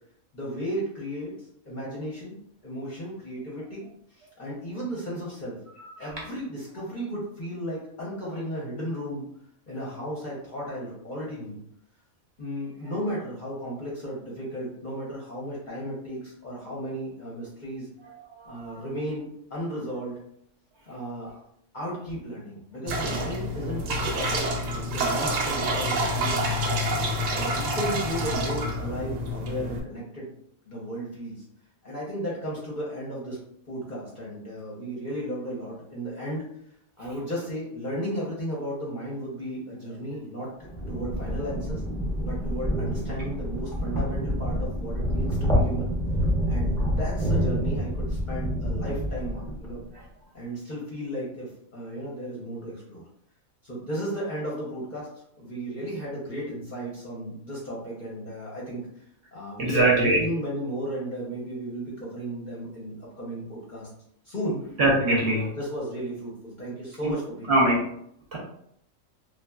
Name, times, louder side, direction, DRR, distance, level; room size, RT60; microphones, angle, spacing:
voice 1, 0.3-2.4 2.6-5.6 6.0-9.2 9.7-11.6 12.4-17.9 18.5-20.2 20.9-21.4 21.7-24.4 24.7-26.9 27.3-30.3 30.7-31.4 31.8-33.4 33.7-36.5 37.0-40.5 40.9-41.8 42.2-45.9 46.5-49.8 50.3-53.0 53.6-55.1 55.4-59.0 59.3-63.9 64.2-64.6 65.0-67.6, equal, 45° left, -5 dB, 0.7 m, -34 dB
voice 2, 18.1-18.8 59.6-60.2 64.8-65.5 67.0-67.1 67.5-67.8 68.3-68.4, right 2 dB, 60° right, -3 dB, 0.8 m, -22 dB
sound 1, 22.9-29.8, right 1 dB, 85° right, 1.0 m, -28 dB
sound 2, 40.6-49.8, equal, 5° left, 0.4 m, -27 dB
3.0 x 2.4 x 2.2 m, 0.71 s
omnidirectional pair, 1.4 m